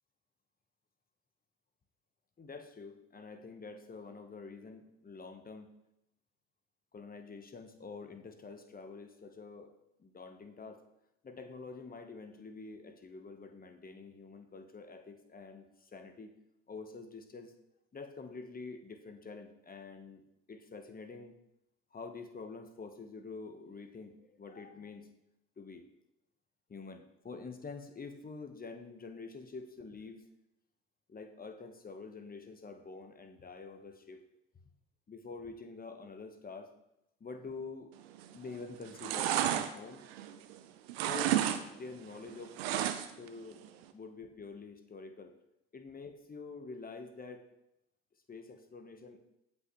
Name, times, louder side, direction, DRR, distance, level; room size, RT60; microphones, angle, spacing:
voice 1, 2.4-5.7 6.9-9.7 10.0-10.8 11.2-16.3 16.7-17.5 17.9-20.2 20.5-21.3 21.9-25.1 25.6-25.9 26.7-30.3 31.1-34.2 35.1-36.7 37.2-37.9 38.3-39.5 39.7-40.0 41.0-41.5 41.7-43.6 43.9-45.3 45.7-47.5 48.3-49.2, left 4 dB, 30° left, 7 dB, 1.2 m, -47 dB
sound 1, 38.1-38.5 38.8-40.6 40.9-41.6 41.9-43.3 43.6-43.7, right 11 dB, 80° right, 0.7 m, -32 dB
16.0 x 5.6 x 3.1 m, 0.83 s
hypercardioid pair, 60°, 30 cm